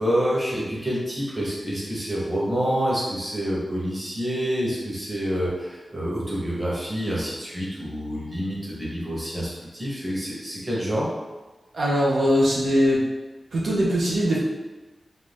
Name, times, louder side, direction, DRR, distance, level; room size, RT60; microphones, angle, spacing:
voice 1, 0.0-11.1, equal, 20° right, -6 dB, 0.9 m, -27 dB
voice 2, 11.7-13.0 13.5-14.4, equal, 90° right, -5 dB, 0.6 m, -21 dB
2.6 x 2.3 x 3.4 m, 1.2 s
wide cardioid pair, 105°, 0 cm